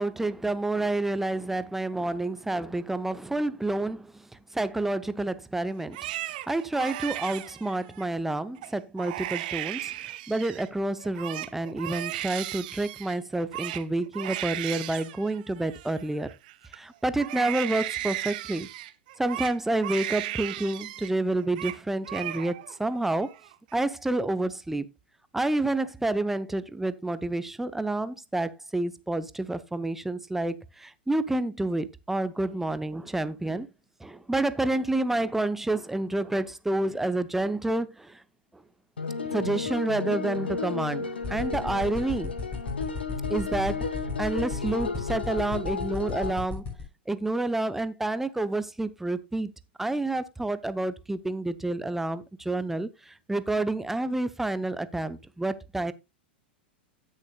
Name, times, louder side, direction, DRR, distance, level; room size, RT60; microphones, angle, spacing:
voice 1, 0.0-6.1 6.5-16.3 16.7-18.7 19.2-23.3 23.7-24.9 25.3-33.7 34.0-38.2 38.5-38.6 39.3-42.3 43.3-43.9 44.2-46.7 47.1-49.5 49.8-55.9, right 2 dB, 5° right, 0.7 m, -29 dB
Crying sobbing, 5.8-8.1 8.6-8.7 9.0-10.7 11.0-16.8 17.2-21.1 21.4-21.8 22.0-22.8 23.1-23.7, right 15 dB, 50° right, 0.8 m, -36 dB
sound 1, 39.0-46.3, left 4 dB, 75° left, 1.3 m, -33 dB
sound 2, 41.2-46.8, left 4 dB, 25° left, 6.1 m, -34 dB
17.0 x 6.5 x 2.2 m
figure-of-eight pair, 95°, 6 cm